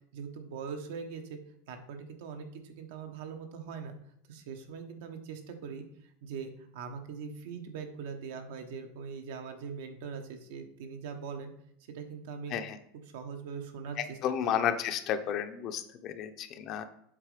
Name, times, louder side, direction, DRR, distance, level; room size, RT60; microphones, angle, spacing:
voice 1, 0.1-1.4 1.7-3.9 4.3-11.5 11.9-12.5 13.1-14.6, right 6 dB, 70° right, 5 dB, 1.2 m, -42 dB
voice 2, 14.0-16.8, left 9 dB, 40° left, 9 dB, 0.6 m, -32 dB
7.5 x 4.1 x 5.0 m, 0.71 s
supercardioid pair, 150°, 0 cm